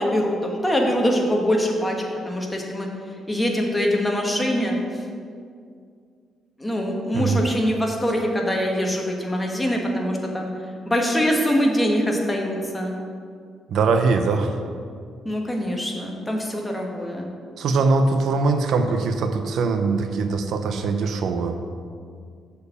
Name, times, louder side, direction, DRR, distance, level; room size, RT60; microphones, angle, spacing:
voice 1, 0.0-2.9 3.3-4.8 6.6-10.5 10.9-12.9 15.2-17.3, equal, 10° left, 0 dB, 1.3 m, -23 dB
voice 2, 7.1-7.4 13.7-14.6 17.6-21.6, right 4 dB, 70° right, 7 dB, 0.6 m, -22 dB
6.9 x 4.5 x 6.7 m, 2.2 s
cardioid pair, 90°, 0 cm